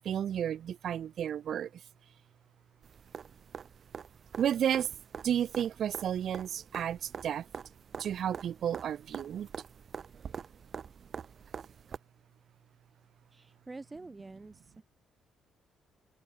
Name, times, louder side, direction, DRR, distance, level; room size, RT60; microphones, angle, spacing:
voice 1, 0.0-1.7 4.4-4.9 5.2-7.4 8.0-9.5, right 9 dB, 65° right, 0.5 m, -32 dB
sound 1, 2.8-12.0 14.0-14.1, right 7 dB, 50° right, 3.3 m, -45 dB
voice 2, 13.3-14.8, right 3 dB, 20° right, 5.9 m, -47 dB
open air
cardioid pair, 90°, 0 cm